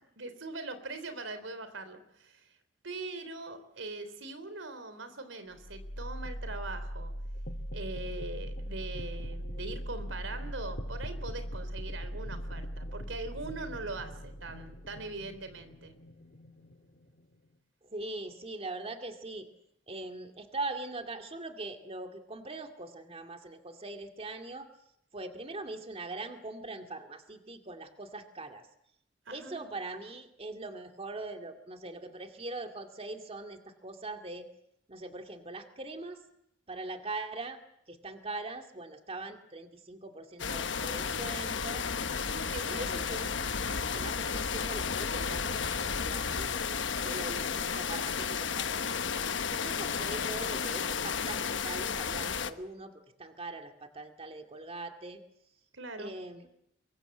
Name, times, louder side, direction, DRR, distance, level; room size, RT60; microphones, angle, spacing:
voice 1, 0.1-2.6 2.8-7.1 7.7-15.9 29.2-29.7 42.1-43.0 55.7-56.1, right 3 dB, 90° right, 11 dB, 3.4 m, -41 dB
sound 1, 5.6-17.5, equal, 50° left, 1.9 m, -40 dB
voice 2, 17.9-19.5 19.9-24.7 25.1-28.7 29.3-34.5 34.9-36.2 36.7-37.6 37.9-41.9 42.7-43.5 43.9-48.9 49.5-52.9 53.2-55.2 56.0-56.4, right 2 dB, 30° right, 5 dB, 2.2 m, -41 dB
sound 2, 40.4-52.5, left 6 dB, 70° left, 1.2 m, -33 dB
24.5 x 23.0 x 7.9 m, 0.78 s
head